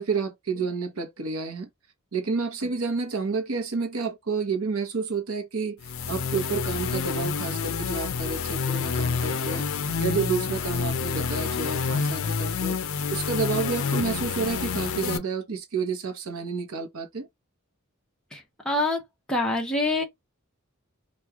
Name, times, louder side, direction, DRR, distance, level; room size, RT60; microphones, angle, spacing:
voice 1, 0.0-1.7 2.1-9.6 10.0-12.8 13.1-17.3, right 5 dB, 75° right, 0.8 m, -30 dB
sound 1, 5.8-15.2, left 5 dB, 65° left, 0.5 m, -28 dB
voice 2, 18.3-19.0 19.3-20.0, left 2 dB, 5° left, 0.8 m, -25 dB
2.9 x 2.3 x 3.5 m
head